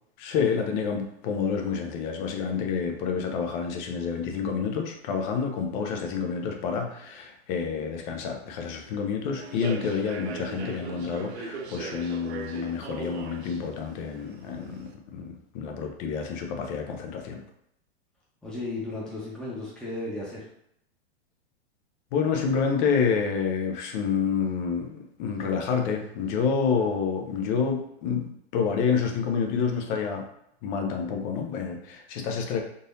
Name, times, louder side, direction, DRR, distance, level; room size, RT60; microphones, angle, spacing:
voice 1, 0.2-17.4 22.1-30.2 30.6-32.6, left 6 dB, 45° left, 3 dB, 0.7 m, -28 dB
Human voice / Subway metro underground, 9.4-14.9, right 4 dB, 80° right, 0.6 m, -39 dB
voice 2, 18.4-20.5, left 2 dB, ahead, -7 dB, 0.9 m, -34 dB
3.9 x 2.6 x 2.6 m, 0.77 s
hypercardioid pair, 130°, 32 cm